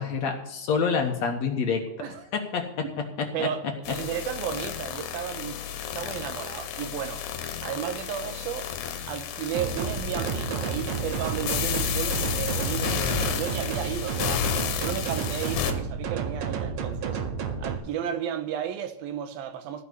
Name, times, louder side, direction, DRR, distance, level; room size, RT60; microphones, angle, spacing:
voice 1, 0.0-1.8 2.3-3.5, left 5 dB, 60° left, 2.2 m, -27 dB
voice 2, 3.3-5.6 5.9-7.3 7.6-8.7 9.1-14.5 14.7-17.2 17.6-19.8, right 9 dB, 90° right, 2.9 m, -33 dB
sound 1, 3.9-15.7, left 9 dB, 80° left, 3.1 m, -32 dB
sound 2, 9.5-17.8, right 6 dB, 75° right, 2.8 m, -31 dB
15.5 x 5.9 x 8.2 m
omnidirectional pair, 4.2 m